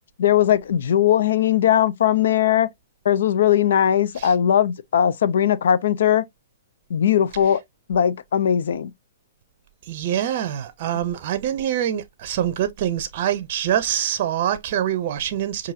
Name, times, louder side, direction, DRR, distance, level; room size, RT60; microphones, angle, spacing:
voice 1, 0.2-2.7 3.0-6.2 6.9-7.6 7.9-8.9, left 10 dB, 65° left, 0.5 m, -19 dB
voice 2, 9.9-15.7, right 10 dB, 50° right, 0.6 m, -25 dB
5.5 x 2.6 x 2.5 m
hypercardioid pair, 120°, 0 cm